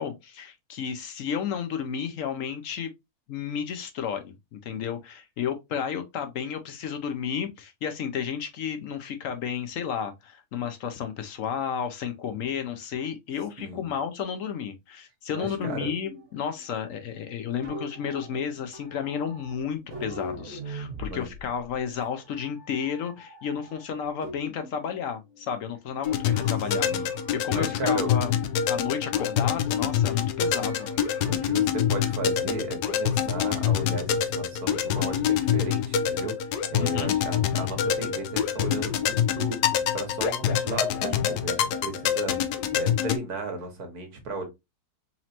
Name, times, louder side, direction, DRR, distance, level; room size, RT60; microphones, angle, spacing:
voice 1, 0.0-2.9 3.3-26.9 27.4-28.3 28.7-30.9 36.8-37.1, left 7 dB, 65° left, 0.9 m, -32 dB
voice 2, 13.6-13.9 15.3-15.9 21.0-21.3 26.8-27.1 27.5-28.1 31.3-42.4 42.7-44.4, right 3 dB, 70° right, 1.7 m, -35 dB
Ring Filter Modulation Quantum, 15.4-24.8 25.2-26.0 26.3-27.5 27.8-29.5 30.6-31.4, equal, 50° right, 1.4 m, -43 dB
sound 1, 26.0-43.2, left 8 dB, 85° left, 1.1 m, -26 dB
4.2 x 3.0 x 2.8 m
omnidirectional pair, 1.7 m